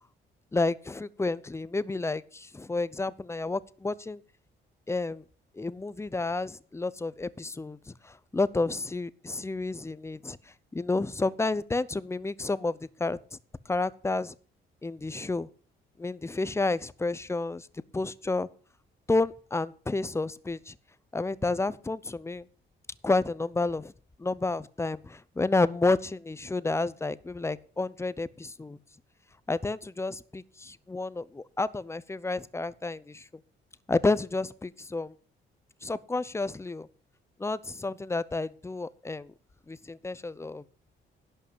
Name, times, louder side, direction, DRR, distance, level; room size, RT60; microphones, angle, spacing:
voice 1, 0.5-4.2 4.9-5.2 5.6-7.8 8.3-10.4 10.7-13.2 13.7-14.3 14.8-15.5 16.0-17.7 17.9-18.5 19.1-20.7 21.1-22.4 23.0-23.9 24.2-28.8 29.5-33.2 33.9-35.1 35.8-36.9 37.4-39.3 39.7-40.6, left 3 dB, 15° left, 18 dB, 0.6 m, -30 dB
11.5 x 5.4 x 8.2 m, 0.41 s
cardioid pair, 90°, 20 cm